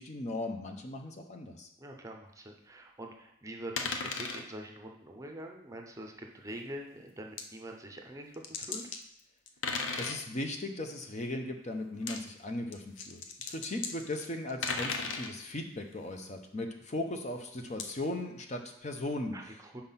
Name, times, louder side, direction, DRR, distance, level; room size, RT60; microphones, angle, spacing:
voice 1, 0.0-1.7 10.0-19.3, left 1 dB, 35° left, 4 dB, 0.7 m, -37 dB
voice 2, 1.8-8.8 19.3-19.8, right 1 dB, 15° right, 2 dB, 0.6 m, -45 dB
sound 1, 3.8-4.4 6.5-6.6 7.4-7.5 8.3-9.0 9.5-10.2 11.9-12.2 12.7-15.3 17.8-17.9, left 4 dB, 80° left, 0.7 m, -35 dB
5.8 x 4.4 x 5.6 m, 0.78 s
head